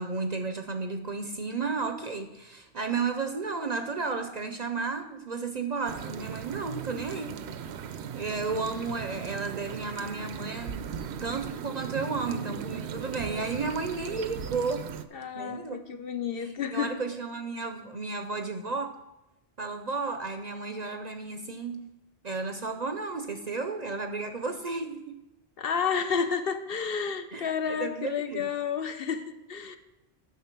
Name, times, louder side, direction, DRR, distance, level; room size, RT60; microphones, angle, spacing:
voice 1, 0.0-7.4 8.1-14.9 15.3-15.8 16.4-18.9 19.6-21.8 22.2-25.2 27.3-28.5, right 4 dB, 45° right, 7 dB, 0.6 m, -33 dB
sound 1, 5.9-15.0, right 7 dB, 75° right, 0.8 m, -38 dB
voice 2, 15.1-17.0 25.6-29.8, left 6 dB, 60° left, 8 dB, 0.9 m, -31 dB
9.3 x 6.2 x 5.9 m, 0.95 s
omnidirectional pair, 1.1 m